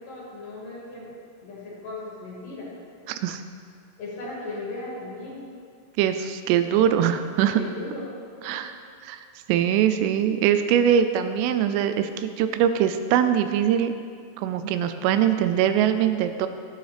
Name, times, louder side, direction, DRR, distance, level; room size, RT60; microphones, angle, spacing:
voice 1, 0.0-2.7 4.0-5.5 6.7-7.1 7.5-8.1 8.4-8.6, left 2 dB, 55° left, -6 dB, 2.9 m, -37 dB
voice 2, 3.1-3.4 6.0-7.6 8.5-8.7 9.0-9.2 9.5-13.9 14.4-16.5, right 9 dB, 90° right, 9 dB, 3.1 m, -22 dB
13.0 x 9.0 x 3.4 m, 2.2 s
omnidirectional pair, 5.6 m